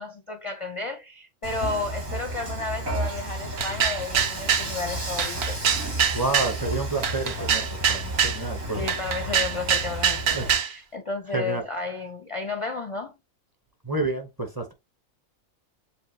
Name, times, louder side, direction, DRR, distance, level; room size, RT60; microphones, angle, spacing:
voice 1, 0.0-5.6 8.7-13.1, left 3 dB, 40° left, 0.4 m, -32 dB
Dishes pots and pans / Frying (food), 1.4-10.6, right 1 dB, 85° right, 3.1 m, -33 dB
sound 1, 3.6-4.7 5.2-6.6 7.0-8.4 8.9-10.7, right 7 dB, 60° right, 0.9 m, -24 dB
voice 2, 6.1-8.9 10.3-10.5 11.3-11.6 13.8-14.7, right 3 dB, 20° right, 0.8 m, -29 dB
7.1 x 2.4 x 2.7 m
omnidirectional pair, 1.4 m